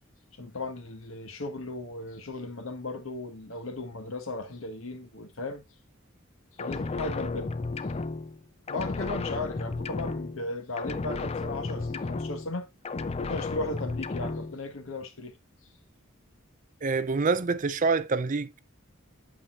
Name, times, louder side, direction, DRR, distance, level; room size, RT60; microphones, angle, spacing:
voice 1, 0.3-5.6 6.6-7.5 8.7-12.7 13.2-15.4, left 2 dB, 75° left, 1.5 m, -36 dB
sound 1, 6.6-8.4 8.7-10.5 10.8-12.6 12.9-14.5, left 3 dB, 30° left, 0.4 m, -33 dB
voice 2, 16.8-18.6, right 4 dB, 40° right, 0.5 m, -26 dB
8.6 x 6.7 x 2.5 m
head